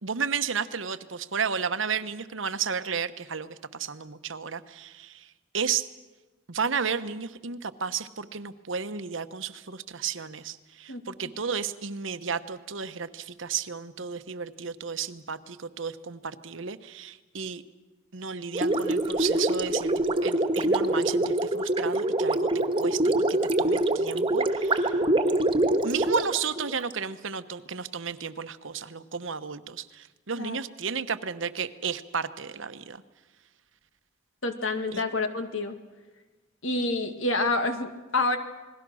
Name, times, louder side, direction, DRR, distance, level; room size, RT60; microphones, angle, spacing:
voice 1, 0.0-5.3 5.5-5.9 6.5-17.6 18.1-22.4 22.8-25.0 25.8-33.0 34.9-35.0, right 6 dB, 70° right, 11 dB, 1.1 m, -33 dB
voice 2, 10.9-11.3 30.4-30.6 34.4-35.8 36.6-38.4, left 2 dB, 75° left, 7 dB, 2.2 m, -28 dB
Gurgling, 18.5-26.9, right 1 dB, 25° right, 1.5 m, -25 dB
28.5 x 21.0 x 6.3 m, 1.2 s
head